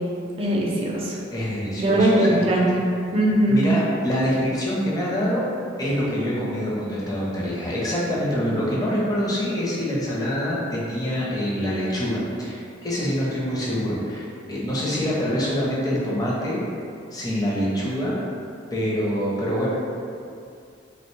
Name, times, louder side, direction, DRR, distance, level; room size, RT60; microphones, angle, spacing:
voice 1, 0.4-1.2 1.8-2.7 3.1-3.6, right 1 dB, 30° right, -4 dB, 0.4 m, -20 dB
voice 2, 1.3-2.5 3.5-5.5 5.8-16.6 17.1-18.1 18.7-19.7, equal, 20° left, -7 dB, 0.5 m, -25 dB
2.7 x 2.1 x 3.0 m, 2.5 s
head